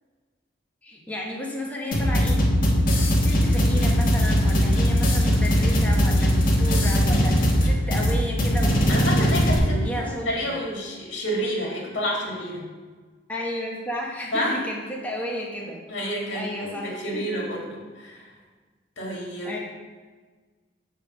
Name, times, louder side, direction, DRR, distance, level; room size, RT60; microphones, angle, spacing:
voice 1, 0.8-2.5 3.0-10.5 13.3-15.8 16.3-17.2 19.4-19.6, equal, 10° left, -3 dB, 1.2 m, -33 dB
sound 1, 1.9-9.6, equal, 50° left, 1.3 m, -20 dB
voice 2, 8.9-12.7 14.3-14.6 15.9-18.3 19.0-19.5, equal, 70° left, -2 dB, 2.0 m, -29 dB
7.4 x 3.5 x 6.2 m, 1.4 s
head